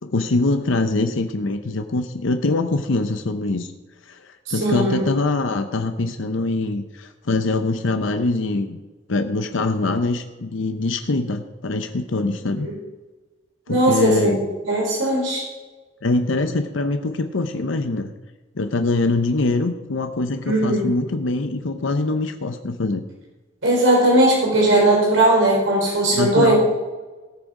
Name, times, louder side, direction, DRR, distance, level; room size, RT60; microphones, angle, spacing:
voice 1, 0.0-3.7 4.1-8.8 9.1-12.7 13.7-14.5 16.0-18.1 18.6-23.0 26.1-26.5, left 2 dB, 80° left, 7 dB, 0.7 m, -23 dB
voice 2, 4.5-5.0 12.6-12.7 13.7-15.4 20.4-20.9 23.6-26.6, right 1 dB, 85° right, -3 dB, 3.8 m, -18 dB
17.5 x 6.4 x 4.8 m, 1.3 s
head